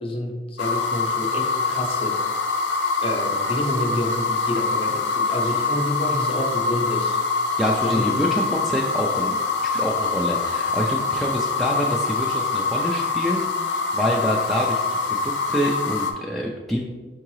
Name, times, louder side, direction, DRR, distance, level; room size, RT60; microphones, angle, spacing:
voice 1, 0.0-2.2 3.0-7.2 7.8-8.0, left 1 dB, 30° left, 2 dB, 0.7 m, -28 dB
sound 1, 0.6-16.1, left 4 dB, 70° left, 0.5 m, -24 dB
voice 2, 7.6-14.8 15.1-16.8, equal, ahead, -3 dB, 0.3 m, -26 dB
4.6 x 3.6 x 3.1 m, 1.4 s
head